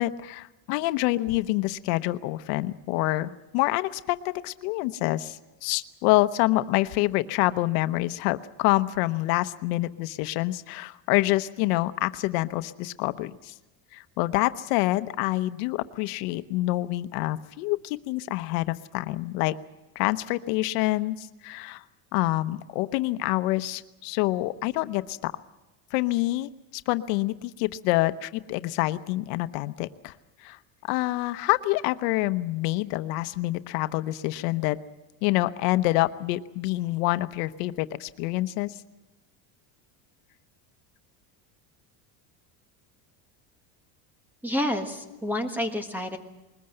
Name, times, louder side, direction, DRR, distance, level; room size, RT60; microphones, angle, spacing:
voice 1, 0.0-13.5 13.9-19.6 19.9-21.8 22.1-25.3 25.9-30.1 30.4-34.8 35.2-38.8, left 18 dB, 90° left, 12 dB, 1.0 m, -27 dB
voice 2, 44.4-46.2, left 1 dB, 5° right, 6 dB, 1.3 m, -29 dB
21.5 x 20.0 x 7.8 m, 1.0 s
cardioid pair, 170°, 45 cm